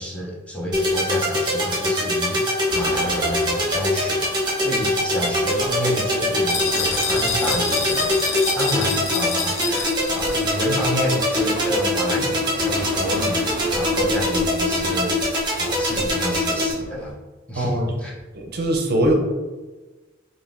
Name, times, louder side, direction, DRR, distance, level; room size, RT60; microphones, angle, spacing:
voice 1, 0.0-4.2 4.6-8.3 8.5-13.4 13.7-17.1 17.5-18.1, equal, 5° left, -4 dB, 0.5 m, -29 dB
sound 1, 0.7-16.7, left 1 dB, 25° right, 0.8 m, -23 dB
sound 2, 2.7-17.1, left 1 dB, 40° left, 0.8 m, -37 dB
sound 3, 6.5-10.6, left 6 dB, 75° left, 0.4 m, -28 dB
voice 2, 18.3-19.1, right 1 dB, 55° right, 2 dB, 0.5 m, -21 dB
3.5 x 2.4 x 2.4 m, 1.2 s
head